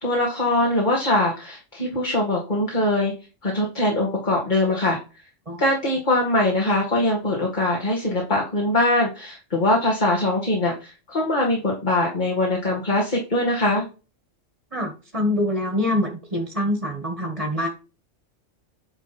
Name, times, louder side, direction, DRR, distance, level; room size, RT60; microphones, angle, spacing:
voice 1, 0.0-3.1 3.4-5.0 5.6-13.8, left 1 dB, 40° left, -2 dB, 2.3 m, -22 dB
voice 2, 14.7-17.7, left 1 dB, 25° right, 3 dB, 1.7 m, -25 dB
9.7 x 4.1 x 4.2 m, 0.31 s
omnidirectional pair, 1.3 m